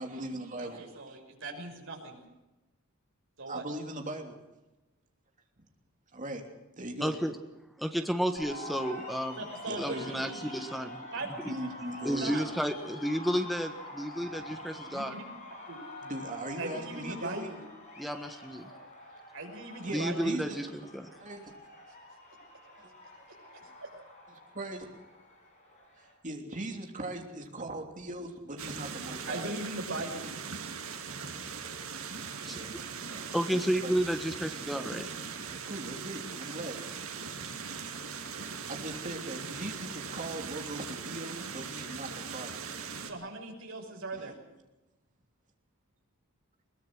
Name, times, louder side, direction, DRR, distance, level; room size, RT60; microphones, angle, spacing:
voice 1, 0.0-0.8 3.5-4.4 6.1-6.4 6.8-7.2 9.7-10.1 11.5-12.4 14.2-14.6 16.0-17.5 19.8-20.6 21.2-21.5 22.8-22.9 24.5-24.9 26.0-29.5 32.4-32.8 33.1-33.9 34.7-35.0 35.5-36.8 38.5-42.6 44.1-44.3, right 1 dB, 35° right, 3 dB, 3.2 m, -40 dB
voice 2, 0.6-2.2 3.4-3.6 9.4-10.5 11.1-11.9 12.2-12.4 14.9-15.2 15.7-15.8 16.6-17.6 19.3-20.2 23.5-23.9 29.3-30.3 43.0-44.3, right 2 dB, 65° right, 2 dB, 5.7 m, -39 dB
voice 3, 7.0-7.4 7.8-9.4 9.8-11.5 12.0-15.2 18.0-18.7 19.9-21.1 32.4-32.7 33.3-35.1, equal, ahead, 6 dB, 1.5 m, -32 dB
sound 1, 8.4-26.1, left 1 dB, 35° left, 7.5 m, -46 dB
sound 2, 28.6-43.1, right 6 dB, 80° right, 2.4 m, -40 dB
21.5 x 20.5 x 6.3 m, 1.0 s
head